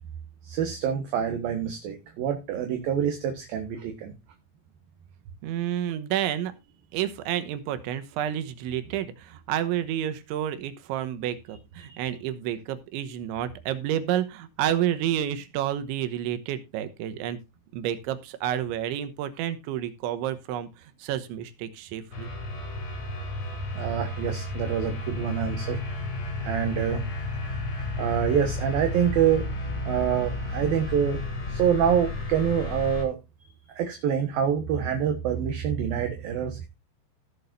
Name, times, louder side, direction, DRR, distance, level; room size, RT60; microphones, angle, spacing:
voice 1, 0.4-4.1 11.9-12.1 23.7-25.8 26.4-27.0 28.0-29.4 29.9-31.2 31.5-33.2 33.8-36.7, right 8 dB, 65° right, 4 dB, 2.7 m, -26 dB
voice 2, 5.4-6.5 6.9-17.4 17.7-22.3, right 11 dB, 85° right, 11 dB, 3.4 m, -30 dB
sound 1, 22.1-33.0, left 2 dB, 30° left, 3.1 m, -32 dB
18.0 x 7.0 x 2.6 m, 0.26 s
omnidirectional pair, 5.2 m